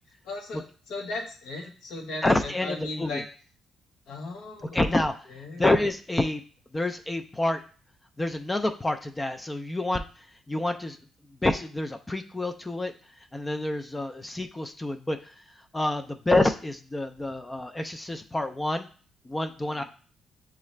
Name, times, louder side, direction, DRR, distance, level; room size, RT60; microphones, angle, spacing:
voice 1, 0.2-3.2 4.1-5.0 5.3-5.7 13.9-14.1 19.7-19.8, left 2 dB, 90° left, -1 dB, 1.3 m, -37 dB
voice 2, 2.2-3.1 4.7-5.1 5.6-6.4 6.7-7.6 8.2-10.0 10.5-11.0 11.4-12.9 13.3-15.2 15.7-18.9 19.3-19.8, left 2 dB, 15° left, 6 dB, 0.4 m, -27 dB
6.8 x 2.4 x 3.2 m, 0.40 s
cardioid pair, 90°, 0 cm